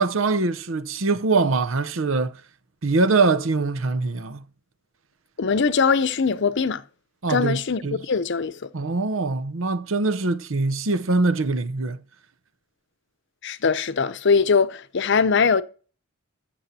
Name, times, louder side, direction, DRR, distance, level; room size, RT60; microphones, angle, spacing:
voice 1, 0.0-2.4 2.8-4.4 7.2-8.0 8.7-12.0, right 3 dB, 75° right, 0.8 m, -23 dB
voice 2, 5.4-6.8 7.3-8.7 13.4-15.6, left 5 dB, 60° left, 0.6 m, -21 dB
14.0 x 7.0 x 2.8 m
head